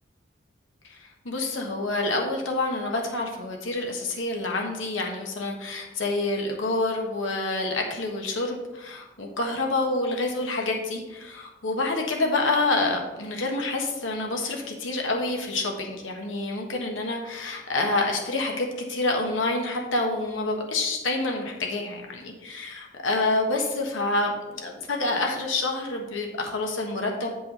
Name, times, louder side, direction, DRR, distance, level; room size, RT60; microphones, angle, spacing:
voice 1, 0.9-27.3, left 2 dB, 85° left, 1 dB, 1.4 m, -27 dB
8.3 x 5.4 x 4.3 m, 1.1 s
head